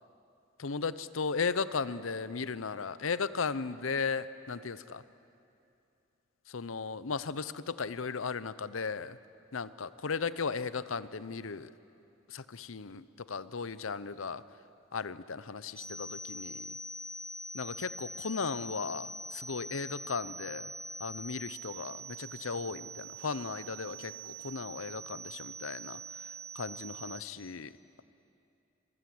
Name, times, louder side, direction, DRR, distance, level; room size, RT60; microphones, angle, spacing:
voice 1, 0.6-5.0 6.5-9.2 9.5-11.7 12.3-14.4 14.9-16.7 17.5-20.7 21.0-26.0 26.6-27.7, left 5 dB, 90° left, 15 dB, 0.8 m, -36 dB
sound 1, 15.8-27.2, right 2 dB, 5° left, 3.2 m, -44 dB
26.5 x 23.0 x 7.9 m, 2.6 s
head